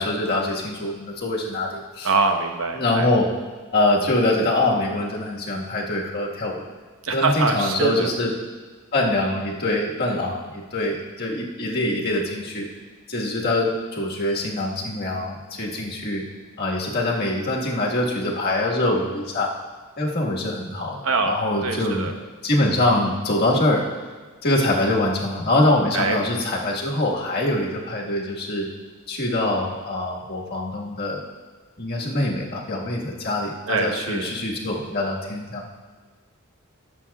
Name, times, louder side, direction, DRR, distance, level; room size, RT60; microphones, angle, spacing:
voice 1, 0.0-2.1 2.7-3.3 3.7-6.6 7.1-8.3 8.9-12.7 13.1-16.2 16.6-19.5 20.0-22.1 22.4-23.8 24.4-28.7 29.1-31.2 31.8-35.6, left 1 dB, 50° left, -2 dB, 1.6 m, -24 dB
voice 2, 2.0-3.1 7.0-8.1 21.0-21.3 21.6-22.1 25.9-26.2 33.7-34.3, right 4 dB, 70° right, 4 dB, 1.0 m, -23 dB
18.5 x 7.5 x 2.4 m, 1.4 s
head